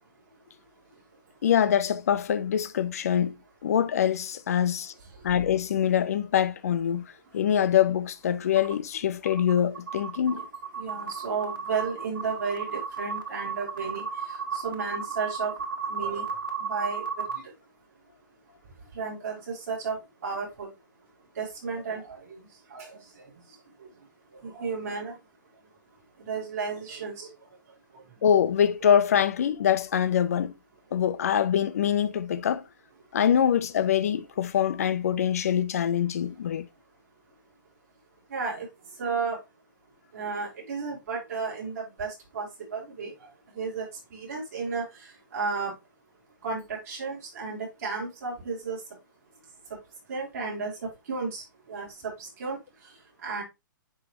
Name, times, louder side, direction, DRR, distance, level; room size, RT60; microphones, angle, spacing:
voice 1, 1.4-3.4 3.6-4.9 5.2-10.4 28.2-30.5 30.9-32.6 33.1-36.7, left 9 dB, 45° left, 0.6 m, -24 dB
sound 1, 8.6-8.7 9.3-17.4, right 6 dB, 75° right, 1.5 m, -34 dB
voice 2, 10.8-14.1 14.5-15.5 15.9-16.3 16.7-17.0 19.0-20.0 20.2-20.7 21.4-22.4 22.7-22.9 24.4-25.1 26.3-27.3 38.3-38.7 39.0-39.4 40.1-42.5 42.7-43.1 43.6-43.9 44.1-44.8 45.3-45.7 46.4-48.8 50.1-50.7 51.1-51.4 51.7-51.9 52.2-52.6 53.2-53.4, right 5 dB, 45° right, 3.6 m, -32 dB
9.8 x 3.3 x 3.0 m
hypercardioid pair, 175°, 11 cm